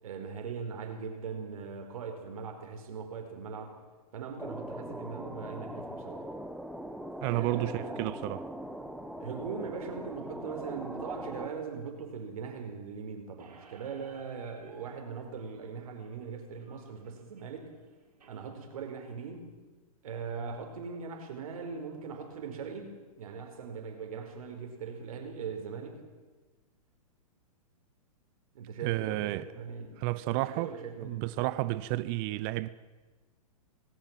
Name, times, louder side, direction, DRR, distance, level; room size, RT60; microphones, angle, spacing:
voice 1, 0.0-3.8 4.1-6.3 7.3-8.1 9.2-17.7 18.3-19.5 20.0-26.0 28.5-31.3, right 5 dB, 65° right, 4.7 m, -40 dB
sound 1, 4.4-11.5, right 1 dB, ahead, 1.5 m, -41 dB
voice 2, 7.2-8.4 28.8-29.5 30.0-30.7 31.0-32.7, right 18 dB, 40° right, 0.7 m, -31 dB
Squeak, 13.4-18.4, right 4 dB, 85° right, 5.3 m, -57 dB
19.5 x 17.5 x 7.6 m
hypercardioid pair, 120°, 20 cm